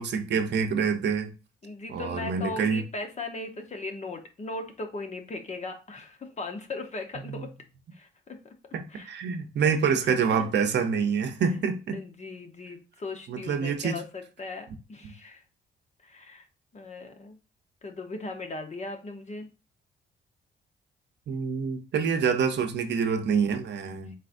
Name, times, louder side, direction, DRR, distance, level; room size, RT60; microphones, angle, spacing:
voice 1, 0.0-1.3 1.9-2.8 7.3-7.4 8.7-12.0 13.3-14.0 15.0-15.1 21.3-24.1, right 6 dB, 60° right, 0.8 m, -26 dB
voice 2, 1.6-7.5 7.9-8.5 8.9-9.1 10.0-10.4 11.9-15.4 16.0-16.5 16.7-17.4 17.8-19.5, left 3 dB, 35° left, 1.0 m, -38 dB
4.1 x 3.8 x 2.6 m
cardioid pair, 90°, 20 cm